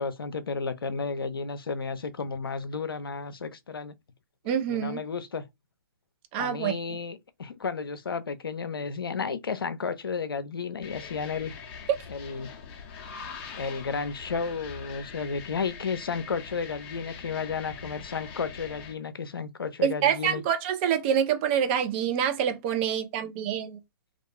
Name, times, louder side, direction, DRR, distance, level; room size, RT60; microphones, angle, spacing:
voice 1, 0.0-3.9 4.7-5.4 6.4-11.5 12.1-12.6 13.5-20.4, left 5 dB, 80° left, 0.5 m, -33 dB
voice 2, 4.5-5.0 6.3-6.8 19.8-23.8, right 9 dB, 30° right, 0.4 m, -26 dB
sound 1, 10.8-18.9, left 6 dB, 35° left, 0.6 m, -43 dB
2.4 x 2.2 x 2.9 m
hypercardioid pair, 130°, 12 cm